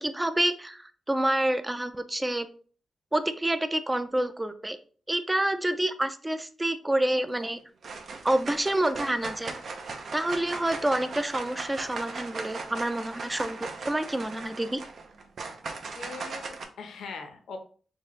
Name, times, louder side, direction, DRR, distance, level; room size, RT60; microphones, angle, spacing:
voice 1, 0.0-2.5 3.1-4.8 5.1-7.6 8.2-9.6 10.1-14.8, right 1 dB, 10° right, 10 dB, 0.5 m, -28 dB
sound 1, 7.1-7.5 7.8-16.6, right 4 dB, 65° right, 0.7 m, -38 dB
voice 2, 16.0-17.6, left 4 dB, 85° left, 4 dB, 0.8 m, -41 dB
4.6 x 3.3 x 3.1 m, 0.42 s
cardioid pair, 100°, 0 cm